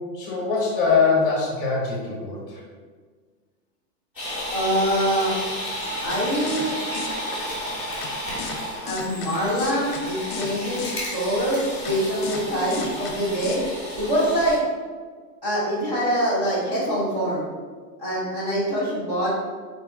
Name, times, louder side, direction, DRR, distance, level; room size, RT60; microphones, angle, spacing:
voice 1, 0.1-2.6, left 5 dB, 35° left, -3 dB, 0.8 m, -22 dB
sound 1, 4.1-14.6, equal, 5° right, 0.8 m, -32 dB
voice 2, 4.5-5.4 6.0-6.8 8.2-8.4 8.8-10.8 11.1-13.6 13.9-14.6 15.4-17.4 18.0-19.3, equal, 30° right, -10 dB, 0.4 m, -24 dB
sound 2, 6.1-6.2 6.5-6.7 6.9-7.1 8.0-8.1 8.4-8.6 8.9-9.3 9.6-10.0 10.3-10.5 10.8-10.9 11.9-12.0 12.2-12.4 12.7-13.1 13.4-13.6, left 6 dB, 60° left, 0.6 m, -34 dB
3.9 x 2.2 x 3.5 m, 1.5 s
supercardioid pair, 170°, 49 cm